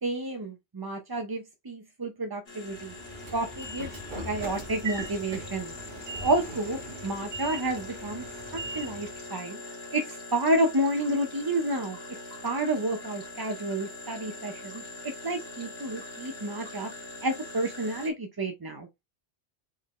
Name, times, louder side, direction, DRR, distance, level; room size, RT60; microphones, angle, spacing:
voice 1, 0.0-2.9 3.3-3.9 4.2-5.7 6.2-8.2 8.7-9.6 9.9-12.0 12.4-16.9 17.2-18.9, right 1 dB, 30° right, 0.5 m, -30 dB
sound 1, 2.5-18.1, left 2 dB, 70° left, 1.8 m, -43 dB
Train / Sliding door, 2.7-9.2, right 2 dB, 45° right, 1.5 m, -40 dB
4.7 x 3.6 x 3.1 m
omnidirectional pair, 1.1 m